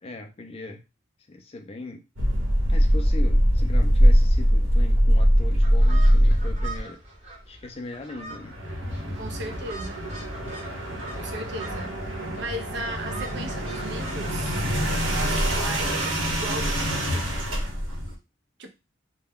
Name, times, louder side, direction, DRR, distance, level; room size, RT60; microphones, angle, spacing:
voice 1, 0.0-0.8 1.3-2.0 2.7-7.0 7.5-8.6, left 2 dB, 30° left, 0.4 m, -39 dB
sound 1, 2.2-6.8 8.2-18.1, equal, 75° right, 1.0 m, -22 dB
sound 2, 5.6-17.1, right 3 dB, 35° right, 0.9 m, -44 dB
voice 2, 9.1-10.1 11.1-12.0 12.4-14.7 15.1-17.3 18.6-18.7, right 2 dB, 55° right, 0.5 m, -36 dB
2.2 x 2.1 x 3.4 m
head